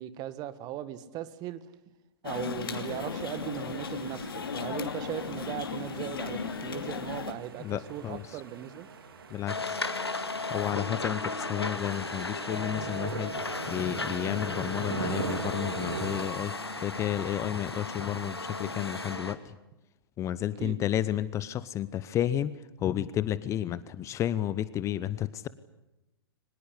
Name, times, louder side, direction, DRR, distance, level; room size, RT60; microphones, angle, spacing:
voice 1, 0.0-1.6 2.2-8.9 20.6-20.8, right 12 dB, 30° right, 14 dB, 1.7 m, -38 dB
sound 1, 2.2-7.3, left 6 dB, 65° left, 2.7 m, -36 dB
sound 2, 2.6-16.3, right 5 dB, 65° right, 3.4 m, -42 dB
voice 2, 7.6-8.4 9.3-9.8 10.5-13.4 13.7-16.6 16.8-19.5 20.2-22.5 22.8-25.5, left 11 dB, 25° left, 17 dB, 0.8 m, -31 dB
sound 3, 9.5-19.4, left 3 dB, 85° left, 2.3 m, -35 dB
24.0 x 20.5 x 9.8 m, 0.96 s
figure-of-eight pair, 110°, 13 cm